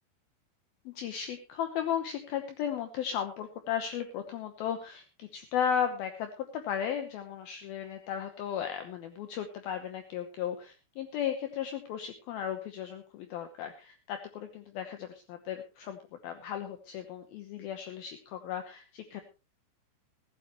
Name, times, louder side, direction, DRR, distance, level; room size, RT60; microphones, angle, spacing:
voice 1, 0.9-19.2, left 9 dB, 80° left, 7 dB, 2.1 m, -35 dB
15.5 x 15.0 x 3.0 m, 0.29 s
omnidirectional pair, 5.8 m